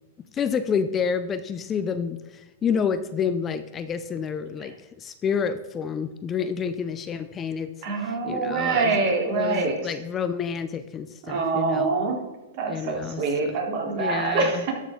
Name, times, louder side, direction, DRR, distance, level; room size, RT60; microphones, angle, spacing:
voice 1, 0.3-7.7 8.0-9.0 9.3-11.9 12.7-13.6 13.9-14.6, left 6 dB, 20° left, 10 dB, 0.5 m, -29 dB
voice 2, 7.8-9.8 11.3-12.2 12.5-14.7, right 4 dB, 50° right, -1 dB, 3.3 m, -25 dB
13.0 x 6.3 x 3.7 m, 1.1 s
hypercardioid pair, 140°, 0 cm